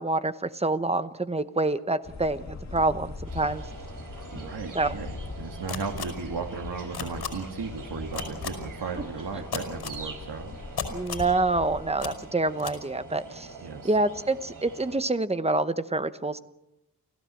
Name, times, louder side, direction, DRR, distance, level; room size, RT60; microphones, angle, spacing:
voice 1, 0.0-3.6 4.7-5.0 10.9-13.5 13.8-16.4, right 2 dB, 15° right, 12 dB, 0.8 m, -27 dB
sound 1, 2.0-12.1, left 3 dB, 45° left, 2.1 m, -41 dB
sound 2, 3.2-15.0, right 3 dB, 55° right, 4.9 m, -44 dB
voice 2, 4.3-10.6 13.6-14.0, right 5 dB, 80° right, 3 dB, 2.3 m, -36 dB
sound 3, 5.7-6.1 6.9-7.3 8.1-8.5 9.5-10.0 10.8-11.3 12.0-12.1 12.6-12.7, left 7 dB, 90° left, 5.3 m, -33 dB
29.5 x 15.5 x 7.7 m, 0.90 s
wide cardioid pair, 180°, 38 cm